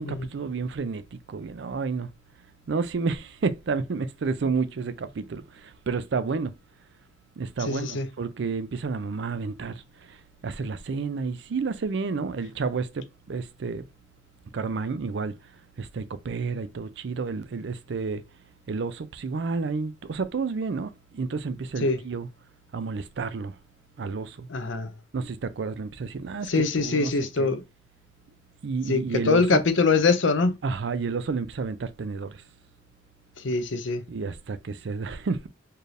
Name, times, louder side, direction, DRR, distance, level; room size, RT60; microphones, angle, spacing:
voice 1, 0.0-2.1 2.7-6.5 7.4-10.2 10.4-13.9 14.5-15.4 15.8-18.2 18.7-22.3 22.7-23.6 24.0-24.5 25.1-27.5 28.6-29.6 30.6-32.4 34.1-35.5, right 4 dB, 70° right, 0.4 m, -30 dB
voice 2, 7.6-8.1 21.8-22.0 24.5-24.9 26.5-27.6 28.9-30.6 33.4-34.0, left 4 dB, 85° left, 0.7 m, -23 dB
4.4 x 2.5 x 3.3 m
head